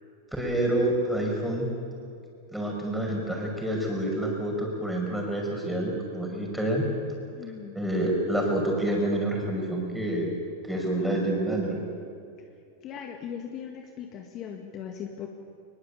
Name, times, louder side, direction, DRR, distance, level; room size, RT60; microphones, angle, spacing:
voice 1, 0.3-1.7 2.5-6.8 7.8-10.3 10.7-11.8, right 1 dB, ahead, -1 dB, 5.6 m, -28 dB
voice 2, 7.3-7.8 12.8-15.3, left 8 dB, 35° left, 3 dB, 1.9 m, -39 dB
21.5 x 21.0 x 8.5 m, 2.6 s
supercardioid pair, 135°, 0 cm